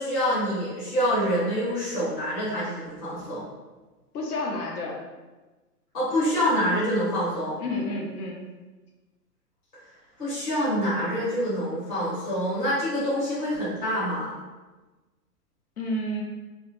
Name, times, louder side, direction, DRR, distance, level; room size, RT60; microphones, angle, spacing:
voice 1, 0.0-3.4 5.9-7.5 10.2-14.3, equal, 25° left, -12 dB, 0.8 m, -26 dB
voice 2, 4.1-5.0 7.6-8.5 15.8-16.2, left 1 dB, 65° left, 0 dB, 0.7 m, -30 dB
2.2 x 2.0 x 3.0 m, 1.2 s
hypercardioid pair, 175°, 48 cm